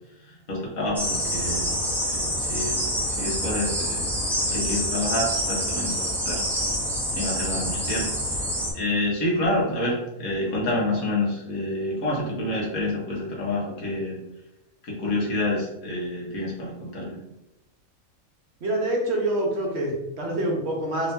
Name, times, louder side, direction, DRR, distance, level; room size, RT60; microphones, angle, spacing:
voice 1, 0.5-1.7 2.1-2.7 3.2-4.1 4.4-6.4 7.2-8.1 8.7-14.2 14.8-17.2, left 1 dB, 90° left, -4 dB, 1.8 m, -28 dB
sound 1, 1.0-8.7, equal, ahead, 0.6 m, -27 dB
voice 2, 18.6-21.1, right 1 dB, 55° right, -1 dB, 1.1 m, -26 dB
3.9 x 2.7 x 3.5 m, 0.94 s
omnidirectional pair, 1.4 m